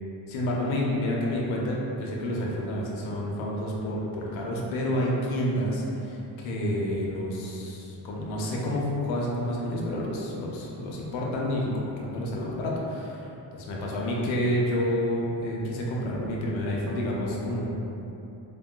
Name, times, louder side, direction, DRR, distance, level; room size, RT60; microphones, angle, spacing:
voice 1, 0.3-13.3 13.5-17.7, equal, 90° left, -3 dB, 0.6 m, -29 dB
3.4 x 2.1 x 2.2 m, 2.9 s
cardioid pair, 65°, 46 cm